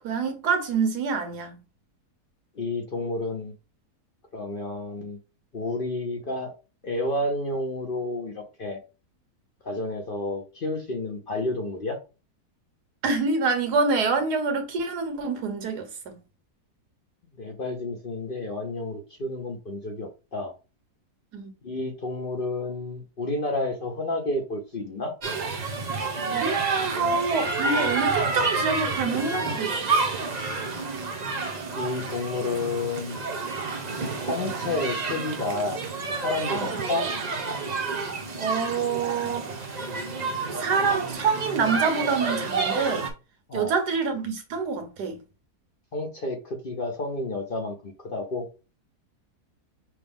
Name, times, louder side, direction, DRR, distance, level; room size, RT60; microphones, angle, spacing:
voice 1, 0.0-1.6 13.0-16.2 21.3-21.5 26.3-30.2 36.5-36.8 38.4-39.8 40.4-43.1 43.5-45.2, right 4 dB, 85° right, 1.6 m, -26 dB
voice 2, 2.6-3.5 4.3-5.2 5.5-6.5 6.8-8.8 9.6-12.0 17.4-20.5 21.6-25.1 31.7-33.2 34.2-35.8 36.2-37.1 43.5-43.7 45.9-48.5, left 2 dB, 45° left, 0.7 m, -30 dB
sound 1, 25.2-43.1, right 4 dB, 40° right, 0.7 m, -29 dB
6.0 x 2.3 x 3.5 m
omnidirectional pair, 1.7 m